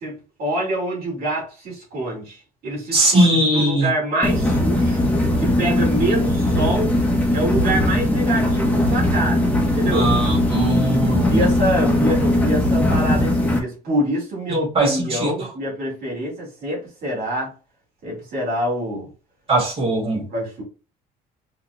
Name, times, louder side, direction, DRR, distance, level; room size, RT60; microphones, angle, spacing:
voice 1, 0.0-5.0 5.4-6.9 7.3-10.1 11.0-17.5 18.0-19.1 20.1-20.6, right 1 dB, 65° right, 2.1 m, -26 dB
voice 2, 2.9-3.9 9.9-11.5 14.5-15.5 19.5-20.2, right 1 dB, 35° right, 1.9 m, -20 dB
sound 1, 4.2-13.6, left 1 dB, 10° left, 1.0 m, -19 dB
4.6 x 2.8 x 2.2 m
cardioid pair, 110°, 17 cm